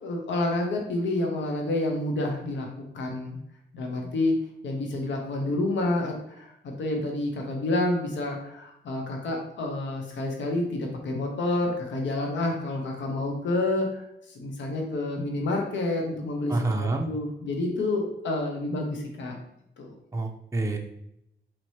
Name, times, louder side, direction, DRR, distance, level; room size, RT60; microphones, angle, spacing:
voice 1, 0.0-3.4 3.7-4.3 4.6-14.1 14.3-19.4 19.8-19.9, left 2 dB, 80° left, 1 dB, 0.8 m, -29 dB
voice 2, 16.5-17.1 20.1-20.8, right 2 dB, 15° right, 3 dB, 0.5 m, -27 dB
4.3 x 2.7 x 3.1 m, 0.78 s
cardioid pair, 65°, 19 cm